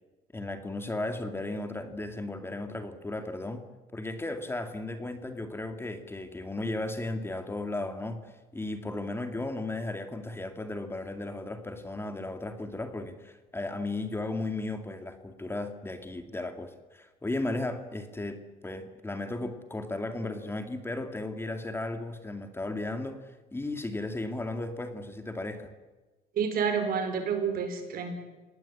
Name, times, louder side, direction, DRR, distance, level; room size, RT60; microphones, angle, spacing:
voice 1, 0.3-3.7 3.9-25.7, left 2 dB, 15° left, 7 dB, 2.3 m, -35 dB
voice 2, 26.4-28.1, right 6 dB, 60° right, 7 dB, 5.2 m, -29 dB
26.0 x 19.0 x 8.6 m, 1.2 s
cardioid pair, 110°, 17 cm